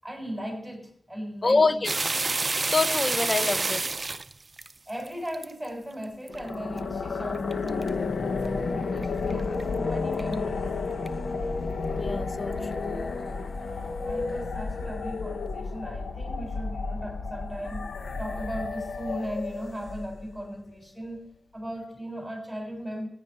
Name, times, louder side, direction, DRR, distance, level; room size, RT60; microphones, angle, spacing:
voice 1, 0.0-1.9 4.9-10.7 14.0-23.1, equal, 5° right, 7.0 m, -37 dB
voice 2, 1.4-1.9 2.7-3.8 12.0-12.9, left 3 dB, 40° left, 0.7 m, -25 dB
sound 1, 1.8-5.5 6.0-6.4 6.8-6.9 7.3-7.9 8.4-8.5 9.0-9.1 9.3-9.6 10.2-10.3 11.1-11.2, right 3 dB, 45° right, 0.5 m, -28 dB
sound 2, 6.3-20.4, left 4 dB, 80° left, 1.1 m, -31 dB
15.5 x 10.5 x 4.7 m
cardioid pair, 50°, 0 cm